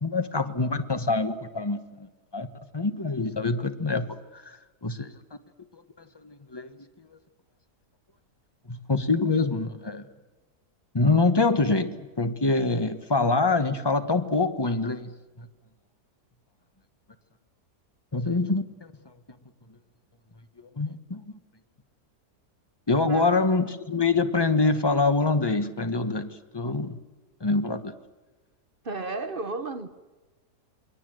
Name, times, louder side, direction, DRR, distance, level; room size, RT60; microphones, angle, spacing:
voice 1, 0.0-2.5 2.7-4.1 4.3-5.1 5.7-6.7 8.7-10.0 10.9-15.5 18.1-18.9 20.7-21.2 22.9-27.0 27.4-27.9, left 3 dB, 20° left, 1.0 m, -25 dB
voice 2, 28.8-29.9, right 3 dB, 40° right, 1.0 m, -33 dB
29.0 x 21.5 x 7.7 m
omnidirectional pair, 1.7 m